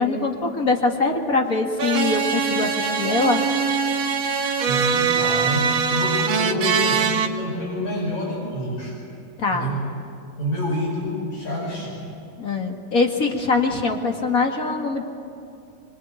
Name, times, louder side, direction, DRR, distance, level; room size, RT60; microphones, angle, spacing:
voice 1, 0.0-3.4 9.4-9.8 12.4-15.0, left 3 dB, 35° left, 2 dB, 1.9 m, -23 dB
sound 1, 1.8-7.3, right 6 dB, 50° right, 1.7 m, -22 dB
voice 2, 4.6-9.0 9.5-9.8 10.4-12.0, equal, 70° left, -6 dB, 6.8 m, -27 dB
25.0 x 24.0 x 9.2 m, 2.4 s
omnidirectional pair, 3.4 m